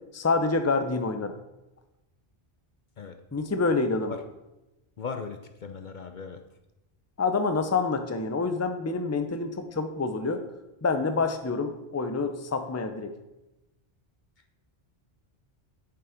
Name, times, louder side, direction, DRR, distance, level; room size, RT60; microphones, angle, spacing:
voice 1, 0.1-1.3 3.3-4.2 7.2-10.4 10.8-13.1, left 3 dB, 15° left, 8 dB, 0.7 m, -27 dB
voice 2, 5.0-6.4, left 5 dB, 55° left, 7 dB, 0.8 m, -38 dB
8.5 x 7.5 x 5.0 m, 0.97 s
omnidirectional pair, 1.0 m